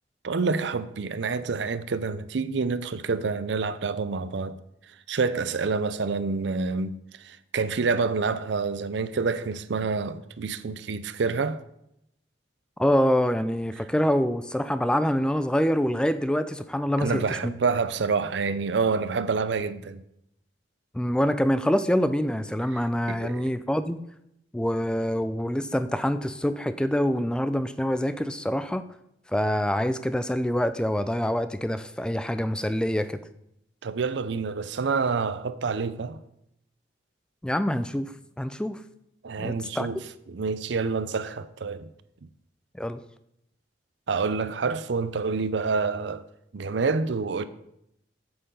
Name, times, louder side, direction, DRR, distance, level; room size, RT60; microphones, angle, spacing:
voice 1, 0.2-4.6 5.1-11.6 17.0-20.0 22.7-22.8 23.1-23.4 33.8-36.2 39.2-40.0 40.3-41.9 44.1-46.2 46.5-47.4, right 4 dB, 70° right, 0.5 m, -27 dB
voice 2, 12.8-17.5 20.9-24.0 24.5-28.8 29.3-33.2 37.4-38.1 38.4-38.8 39.4-39.9 42.7-43.0, equal, 5° left, 0.3 m, -25 dB
8.0 x 7.8 x 3.8 m
head